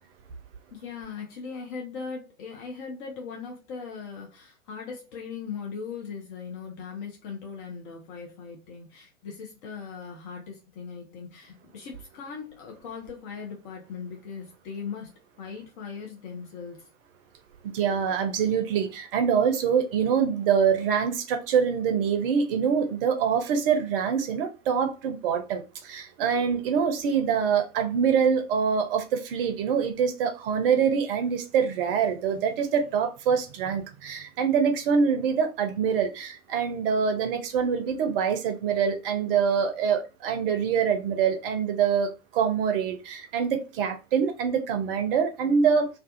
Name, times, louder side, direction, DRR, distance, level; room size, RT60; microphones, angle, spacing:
voice 1, 0.7-15.1 15.4-16.9, left 5 dB, 35° left, 0.7 m, -39 dB
voice 2, 17.7-45.9, right 7 dB, 45° right, 0.6 m, -25 dB
2.4 x 2.4 x 2.4 m
figure-of-eight pair, 90°, 41 cm